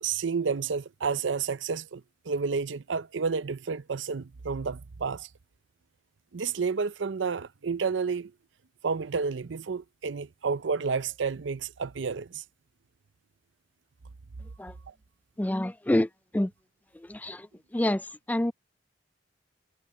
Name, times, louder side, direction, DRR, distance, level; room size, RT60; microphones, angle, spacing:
voice 1, 0.0-5.3 6.3-8.3 8.8-12.4 14.9-15.0, right 5 dB, 85° right, 0.6 m, -30 dB
voice 2, 15.4-16.5 16.9-17.5 17.7-18.5, left 1 dB, 10° left, 0.4 m, -28 dB
head